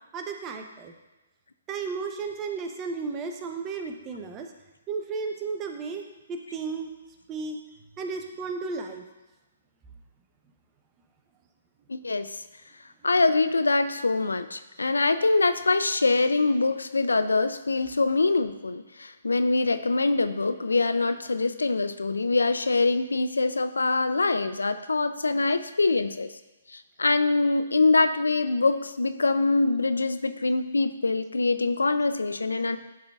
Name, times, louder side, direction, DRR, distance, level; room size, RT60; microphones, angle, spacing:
voice 1, 0.1-0.9 1.7-4.5 4.9-6.0 6.3-6.9 7.3-7.6 8.0-9.0, right 4 dB, 25° right, 4 dB, 0.6 m, -33 dB
voice 2, 11.9-12.4 13.0-26.3 26.7-32.8, left 3 dB, 85° left, 11 dB, 0.3 m, -24 dB
10.5 x 3.8 x 2.4 m, 1.1 s
figure-of-eight pair, 135°, 0 cm